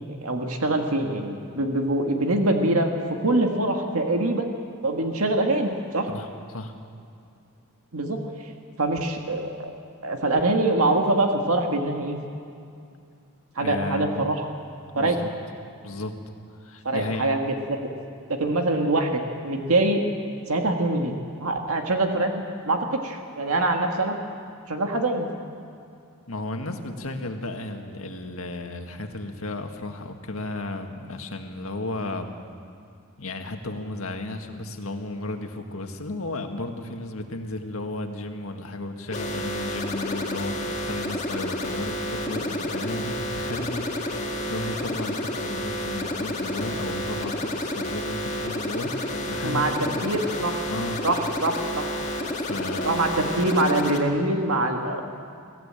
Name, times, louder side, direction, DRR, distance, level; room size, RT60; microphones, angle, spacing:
voice 1, 0.1-2.9 3.2-4.6 4.8-6.1 7.9-8.2 8.8-9.7 10.0-12.2 13.5-14.4 14.9-15.2 16.8-17.8 18.3-20.0 20.5-21.1 21.4-24.2 24.7-25.3 49.4-50.6 51.0-51.8 52.8-55.0, right 2 dB, 80° right, 3 dB, 1.8 m, -24 dB
voice 2, 6.1-6.7 13.6-14.2 14.9-15.3 15.8-16.1 16.6-17.3 26.3-32.3 33.2-50.2 50.7-51.0 52.4-53.2, left 2 dB, 75° left, 4 dB, 1.9 m, -34 dB
sound 1, 39.1-54.0, left 1 dB, 30° left, 2.1 m, -30 dB
23.0 x 16.0 x 8.9 m, 2.4 s
head